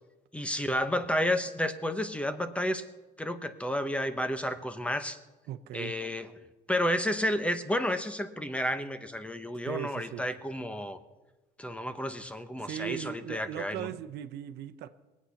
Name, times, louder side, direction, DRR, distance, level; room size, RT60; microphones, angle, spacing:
voice 1, 0.3-2.8 3.2-5.2 5.7-6.3 6.7-11.0 11.6-13.9, equal, 5° left, 0.9 m, -31 dB
voice 2, 5.5-5.9 9.7-10.3 12.6-14.9, right 12 dB, 80° right, 0.8 m, -38 dB
20.5 x 8.4 x 5.8 m
cardioid pair, 110°, 17 cm